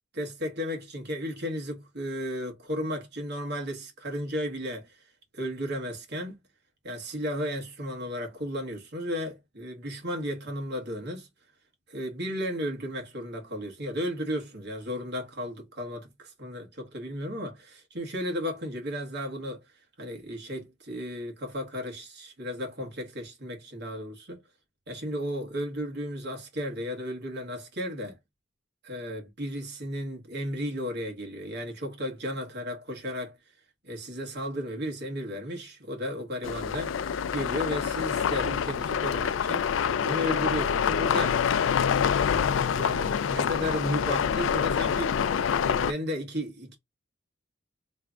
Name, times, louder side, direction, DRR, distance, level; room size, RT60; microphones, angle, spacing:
voice 1, 0.1-5.0 5.3-6.4 6.8-11.3 11.9-19.6 20.0-24.4 24.9-28.2 28.8-33.4 33.8-41.5 42.7-45.2 45.6-46.8, equal, 60° right, 1.4 m, -34 dB
sound 1, 36.4-45.9, left 7 dB, 80° left, 0.4 m, -26 dB
3.2 x 2.4 x 3.4 m
head